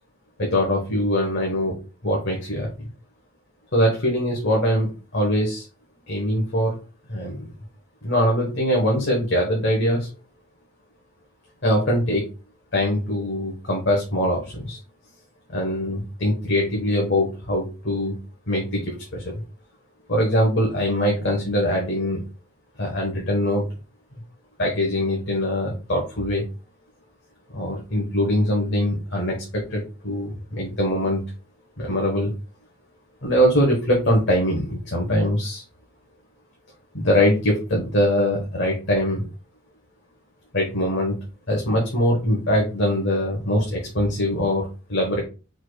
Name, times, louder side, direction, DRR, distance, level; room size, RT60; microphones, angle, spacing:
voice 1, 0.4-1.8 2.0-2.9 3.7-5.7 6.1-6.8 7.1-7.5 8.0-10.1 11.6-12.3 12.7-14.8 15.5-18.1 18.5-19.4 20.1-22.2 22.8-23.7 24.6-26.5 27.5-31.2 31.8-32.3 33.2-35.6 36.9-39.3 40.5-41.2 41.5-45.2, equal, 60° left, -1 dB, 1.2 m, -22 dB
4.8 x 4.3 x 2.3 m, 0.32 s
head